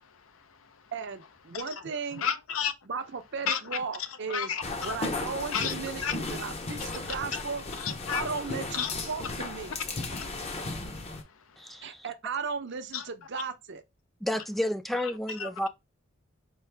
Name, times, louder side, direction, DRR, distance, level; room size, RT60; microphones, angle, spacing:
voice 1, 0.1-0.8 1.5-1.7 2.1-2.7 3.5-5.0 5.5-6.2 7.3-7.4 7.8-8.3 8.7-8.9 10.1-10.2 11.0-11.2 11.8-11.9 12.9-13.0 15.0-15.1 15.4-15.5, left 8 dB, 85° left, 0.6 m, -33 dB
voice 2, 0.9-2.2 2.9-4.5 4.8-7.6 8.1-9.7 11.8-13.8, right 5 dB, 60° right, 0.6 m, -36 dB
sound 1, 4.6-11.2, left 2 dB, 30° left, 0.7 m, -35 dB
voice 3, 11.6-12.1 14.2-15.7, left 1 dB, ahead, 0.3 m, -31 dB
4.6 x 2.5 x 3.3 m
head